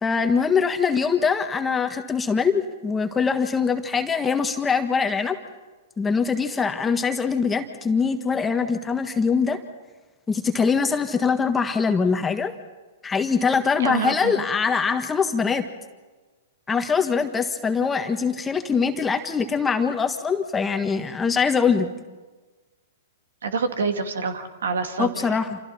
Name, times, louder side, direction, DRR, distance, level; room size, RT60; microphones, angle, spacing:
voice 1, 0.0-5.4 6.0-9.6 10.3-12.5 13.0-15.6 16.7-21.9 25.0-25.6, left 5 dB, 15° left, 6 dB, 1.5 m, -23 dB
voice 2, 13.8-14.4 23.4-25.4, right 4 dB, 75° right, 7 dB, 2.4 m, -27 dB
29.0 x 27.0 x 4.3 m, 1.3 s
hypercardioid pair, 115°, 0 cm